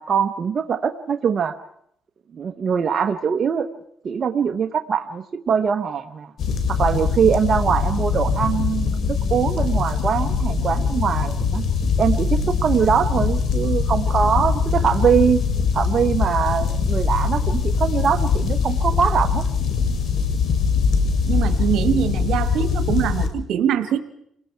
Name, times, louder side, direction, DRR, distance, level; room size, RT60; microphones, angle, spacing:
voice 1, 0.0-1.5 2.3-3.7 4.0-6.3 6.7-11.6 12.0-15.4 15.7-19.4, right 7 dB, 50° right, 6 dB, 1.0 m, -22 dB
sound 1, 6.4-23.3, left 5 dB, 70° left, 2.6 m, -22 dB
voice 2, 21.3-24.0, right 9 dB, 85° right, 10 dB, 1.5 m, -23 dB
29.0 x 20.0 x 4.6 m, 0.73 s
cardioid pair, 90°, 0 cm